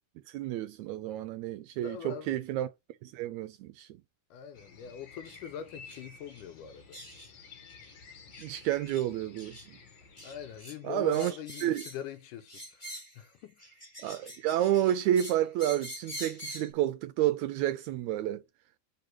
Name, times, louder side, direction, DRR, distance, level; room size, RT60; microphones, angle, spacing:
voice 1, 0.3-2.7 3.0-3.9 8.4-9.8 10.8-11.3 11.6-11.8 14.0-18.4, right 12 dB, 80° right, 1.7 m, -30 dB
voice 2, 1.8-2.4 4.3-7.0 10.2-12.8 13.2-13.6, left 7 dB, 85° left, 2.4 m, -42 dB
sound 1, 4.5-10.6, left 5 dB, 55° left, 1.4 m, -53 dB
sound 2, 5.2-5.4 5.8-6.0 6.3-6.4 6.9-7.3 7.7-7.9 8.3-8.5 8.9-9.1 9.4-9.7 10.2-10.8 11.1-12.1 12.5-13.2 13.6-16.7, equal, 25° left, 0.6 m, -45 dB
6.5 x 3.9 x 6.0 m
omnidirectional pair, 3.7 m